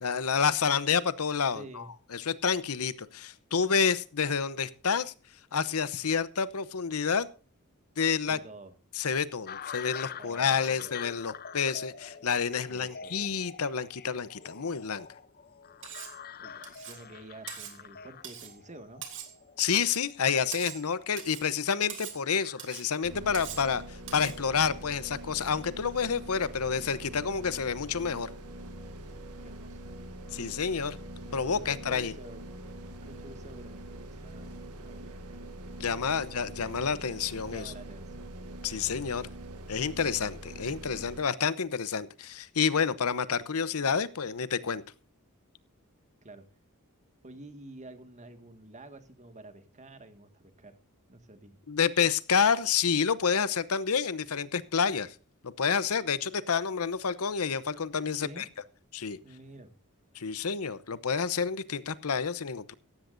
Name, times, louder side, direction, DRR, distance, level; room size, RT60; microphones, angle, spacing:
voice 1, 0.0-1.8 2.1-5.1 5.5-7.3 8.0-8.4 9.0-15.1 19.6-28.3 30.3-31.0 31.3-32.1 35.8-37.6 38.6-39.3 39.7-44.8 51.7-55.1 55.4-58.4 58.9-59.2 60.1-62.7, left 6 dB, 70° left, 17 dB, 0.8 m, -29 dB
voice 2, 1.5-1.9 8.2-8.7 10.1-10.9 12.7-13.2 16.4-19.0 29.4-29.8 30.6-30.9 31.4-32.5 32.9-35.2 36.1-36.3 37.2-38.3 46.2-46.4 47.2-50.8 51.1-51.6 58.2-58.5 59.2-59.7, right 2 dB, 35° right, 8 dB, 1.9 m, -49 dB
sound 1, 9.5-22.7, left 7 dB, 45° left, 0.6 m, -46 dB
Cutlery silverware, 15.8-16.2 16.6-17.0 17.5-17.8 18.2-18.6 19.0-19.4 19.8-20.0 20.5-20.9 21.2-21.5 21.9-22.2 22.6-22.9 23.3-23.7 24.1-24.4, right 10 dB, 60° right, 3.1 m, -42 dB
sound 2, 23.0-41.2, right 1 dB, 80° right, 1.7 m, -44 dB
16.5 x 15.0 x 2.6 m, 0.38 s
head